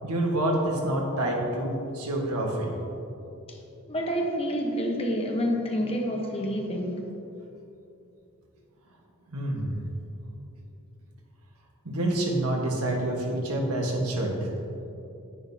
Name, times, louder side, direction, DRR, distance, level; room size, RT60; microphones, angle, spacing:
voice 1, 0.0-2.7 9.3-9.7 11.8-14.8, right 1 dB, 85° right, 0 dB, 1.5 m, -27 dB
voice 2, 3.9-7.0, equal, 25° left, 1 dB, 1.0 m, -28 dB
10.0 x 9.7 x 2.8 m, 2.8 s
head